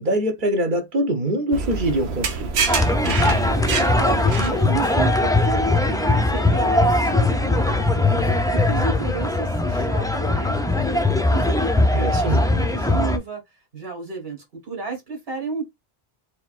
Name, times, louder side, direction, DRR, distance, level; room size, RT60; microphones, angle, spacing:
voice 1, 0.0-2.7 11.9-12.4, right 1 dB, 55° right, 1.1 m, -24 dB
sound 1, 1.5-4.9, right 5 dB, 85° right, 1.1 m, -26 dB
sound 2, 2.7-13.2, left 2 dB, 5° left, 0.3 m, -20 dB
voice 2, 3.0-10.6 11.3-13.4 13.7-15.7, right 5 dB, 70° right, 2.1 m, -33 dB
4.3 x 3.6 x 2.4 m
omnidirectional pair, 1.0 m